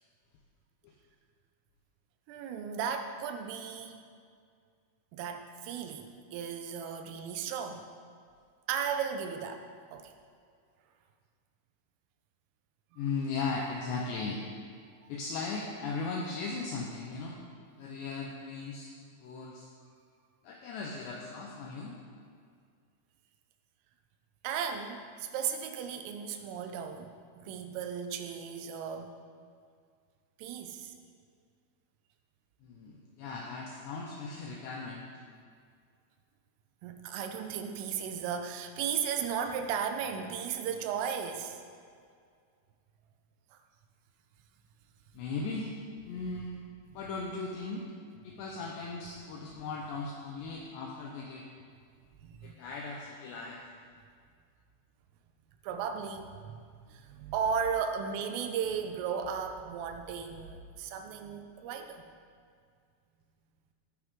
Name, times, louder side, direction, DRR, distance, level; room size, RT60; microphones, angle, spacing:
voice 1, 2.3-4.0 5.1-7.9 8.7-10.1 24.4-29.1 30.4-30.9 36.8-41.6 52.2-52.6 55.6-56.6 56.9-62.0, right 7 dB, 90° right, 6 dB, 3.5 m, -35 dB
voice 2, 13.0-14.5 15.1-17.4 17.8-19.7 20.4-22.0 32.6-35.1 45.1-45.7 46.1-46.6 46.9-47.8 48.2-51.5 52.4-53.6 57.8-57.9, left 4 dB, 75° left, -1 dB, 2.9 m, -37 dB
18.5 x 9.8 x 3.8 m, 2.2 s
omnidirectional pair, 5.6 m